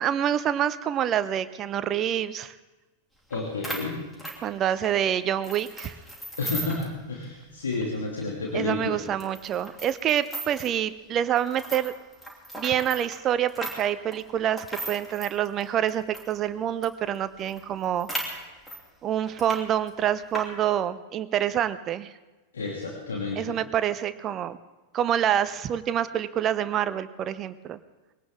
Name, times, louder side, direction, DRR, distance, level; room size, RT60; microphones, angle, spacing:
voice 1, 0.0-2.5 4.4-5.9 8.5-11.9 12.5-18.1 19.0-22.1 23.4-24.6 24.9-27.8, right 10 dB, 30° right, 14 dB, 0.8 m, -27 dB
voice 2, 3.3-4.0 6.4-9.0 22.5-23.6, left 3 dB, 70° left, -3 dB, 2.5 m, -31 dB
sound 1, 3.3-3.4 3.6-5.0 5.4-6.9 7.2-7.3 7.7-7.8 8.4-8.5 9.2-10.8 11.4-16.3 16.8-16.9 17.1-17.2 17.5-18.8 19.3-19.6 19.9-20.4, right 1 dB, 5° left, 3.1 m, -37 dB
21.5 x 17.5 x 3.7 m, 1.2 s
figure-of-eight pair, 90°, 0 cm